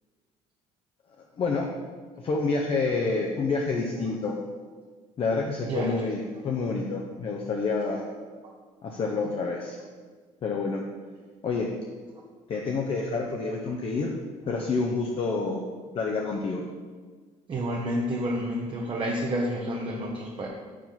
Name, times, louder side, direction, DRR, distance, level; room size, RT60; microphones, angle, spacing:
voice 1, 1.4-1.7 2.2-4.4 5.2-8.1 8.8-9.8 10.4-10.8 11.4-11.7 12.5-14.1 14.5-15.6 15.9-16.6, left 4 dB, 45° left, 0 dB, 0.6 m, -28 dB
voice 2, 5.6-6.0 17.5-20.5, equal, 35° right, -2 dB, 0.8 m, -29 dB
4.9 x 3.9 x 5.7 m, 1.5 s
cardioid pair, 105°, 14 cm